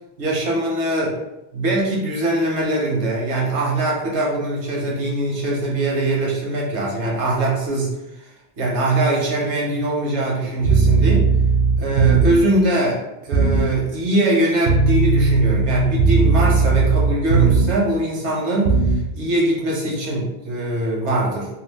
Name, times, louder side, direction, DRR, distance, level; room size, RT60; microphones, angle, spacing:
voice 1, 0.2-1.2 1.5-7.9 8.6-11.3 11.8-18.7 19.1-21.5, right 1 dB, 80° right, -4 dB, 1.1 m, -22 dB
sound 1, 10.7-12.5 13.3-13.7 14.7-17.8 18.7-19.1, right 4 dB, 60° right, 0.5 m, -17 dB
2.6 x 2.3 x 3.3 m, 0.95 s
omnidirectional pair, 1.2 m